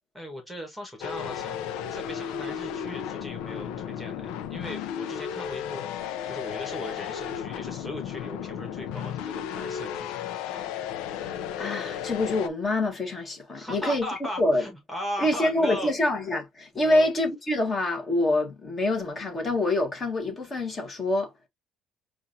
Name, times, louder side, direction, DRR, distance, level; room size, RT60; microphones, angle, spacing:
voice 1, 0.1-1.6 1.9-5.8 6.3-10.6 13.5-15.9 16.8-17.1, left 1 dB, ahead, 1.4 m, -38 dB
sound 1, 1.0-12.5, left 9 dB, 90° left, 0.6 m, -34 dB
voice 2, 11.2-14.1 14.4-14.6 15.2-21.5, left 1 dB, 25° left, 1.5 m, -26 dB
6.9 x 2.6 x 2.7 m
cardioid pair, 165°, 0 cm